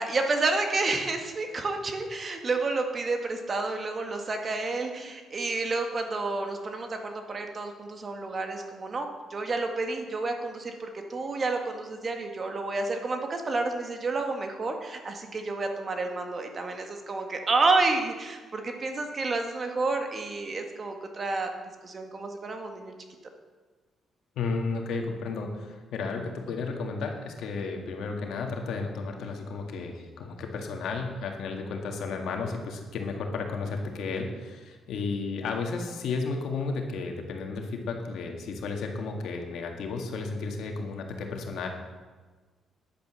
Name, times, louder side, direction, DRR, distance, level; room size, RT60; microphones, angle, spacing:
voice 1, 0.0-21.5 21.8-22.9, right 3 dB, 40° right, 4 dB, 1.8 m, -30 dB
voice 2, 24.4-41.7, left 4 dB, 80° left, 3 dB, 1.8 m, -33 dB
10.5 x 8.8 x 6.3 m, 1.4 s
cardioid pair, 90°, 0 cm